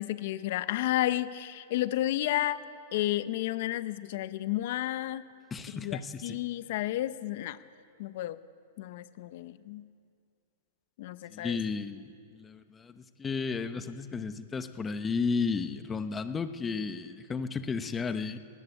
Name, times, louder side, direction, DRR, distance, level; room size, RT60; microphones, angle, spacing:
voice 1, 0.0-2.6 2.9-5.2 5.7-7.6 8.0-8.4 8.8-9.8 11.0-11.6, left 14 dB, 55° left, 13 dB, 0.9 m, -32 dB
voice 2, 5.5-6.4 11.3-18.4, left 5 dB, 15° left, 10 dB, 0.9 m, -33 dB
20.0 x 18.5 x 8.5 m, 2.3 s
supercardioid pair, 155°, 0 cm